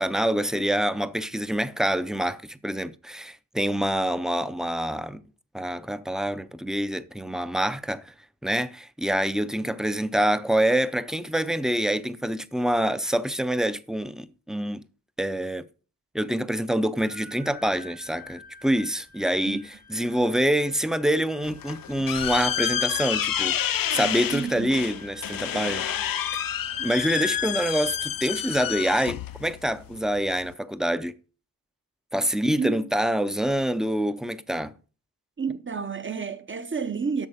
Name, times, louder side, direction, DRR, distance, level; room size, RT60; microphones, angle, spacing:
voice 1, 0.0-5.2 5.5-8.1 8.4-14.8 15.2-15.6 16.1-23.6 23.9-25.9 26.8-31.1 32.1-34.7, right 1 dB, ahead, 0.5 m, -26 dB
sound 1, 17.0-30.1, equal, 55° right, 2.6 m, -45 dB
sound 2, 21.4-30.5, left 10 dB, 65° left, 0.5 m, -29 dB
voice 2, 24.3-24.8 32.1-32.2 32.6-32.8 35.4-37.3, right 5 dB, 30° right, 0.8 m, -30 dB
8.3 x 6.3 x 5.0 m
wide cardioid pair, 70°, 37 cm